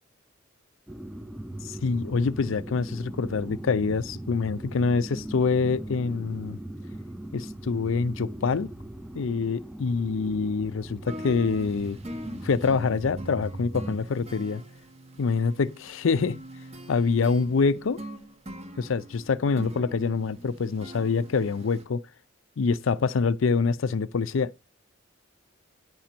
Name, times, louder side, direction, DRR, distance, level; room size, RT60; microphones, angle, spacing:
sound 1, 0.9-14.0, right 1 dB, 5° right, 0.5 m, -39 dB
voice 1, 1.6-6.6 7.3-8.7 9.1-12.0 12.4-14.6 15.2-16.4 16.9-18.0 18.8-22.0 22.6-24.6, left 4 dB, 75° left, 0.5 m, -26 dB
sound 2, 11.0-21.8, equal, 30° right, 1.0 m, -42 dB
9.4 x 4.4 x 5.1 m
head